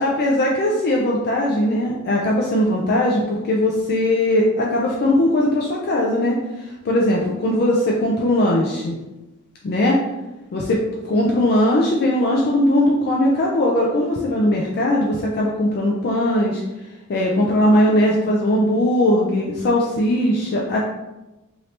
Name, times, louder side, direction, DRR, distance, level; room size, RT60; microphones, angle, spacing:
voice 1, 0.0-6.3 6.9-9.0 9.6-10.0 10.5-10.8 11.0-16.6 17.1-20.8, left 1 dB, 45° left, -2 dB, 0.4 m, -19 dB
2.8 x 2.7 x 3.2 m, 1.0 s
head